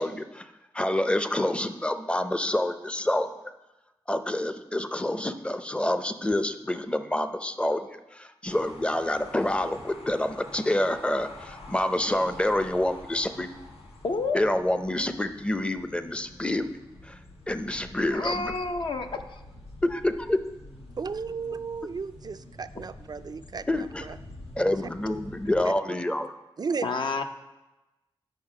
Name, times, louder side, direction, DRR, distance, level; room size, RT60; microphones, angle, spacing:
voice 1, 0.0-3.3 4.1-13.5 14.3-16.8 17.0-17.2 17.5-18.5 19.8-20.4 23.7-24.0 24.6-26.3, left 1 dB, 10° left, 9 dB, 0.5 m, -27 dB
sound 1, 8.4-25.6, left 2 dB, 85° left, 1.3 m, -47 dB
voice 2, 14.0-14.4 18.1-19.4 26.8-27.2, left 3 dB, 60° left, 6 dB, 0.6 m, -29 dB
voice 3, 21.0-24.2 24.7-24.8 25.6-26.0 26.6-26.9, right 5 dB, 45° right, 11 dB, 0.4 m, -34 dB
9.1 x 5.8 x 4.8 m, 1.0 s
wide cardioid pair, 80°, 10 cm